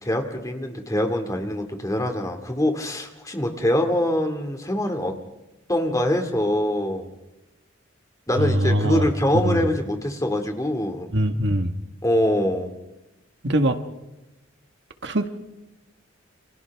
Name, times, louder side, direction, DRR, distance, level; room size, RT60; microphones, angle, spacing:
voice 1, 0.0-5.1 5.7-7.1 8.3-11.1 12.0-12.7, left 1 dB, 15° left, 5 dB, 2.4 m, -24 dB
voice 2, 8.4-9.1 9.4-9.6 11.1-11.7 13.4-13.8 15.0-15.3, right 1 dB, 60° right, 7 dB, 1.6 m, -22 dB
29.0 x 28.5 x 3.6 m, 0.99 s
head